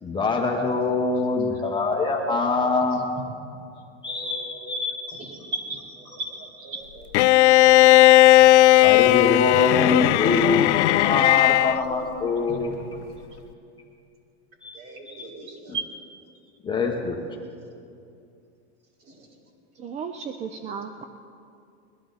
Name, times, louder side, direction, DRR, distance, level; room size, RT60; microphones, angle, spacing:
voice 1, 0.0-3.0 4.0-5.2 8.8-10.7 11.0-12.7 14.6-14.8 15.1-15.3 15.7-15.8 16.6-17.2, left 3 dB, 15° left, -1 dB, 1.1 m, -24 dB
voice 2, 4.1-4.7 5.1-7.1 7.4-7.8 8.6-9.2 10.2-10.4 12.5-12.6 14.7-15.8 19.1-19.3, right 2 dB, 35° right, -2 dB, 3.9 m, -37 dB
Bowed string instrument, 7.1-11.8, left 16 dB, 80° left, 0.5 m, -16 dB
voice 3, 19.7-21.0, right 6 dB, 20° right, 7 dB, 0.5 m, -35 dB
21.5 x 12.0 x 4.0 m, 2.5 s
supercardioid pair, 135°, 34 cm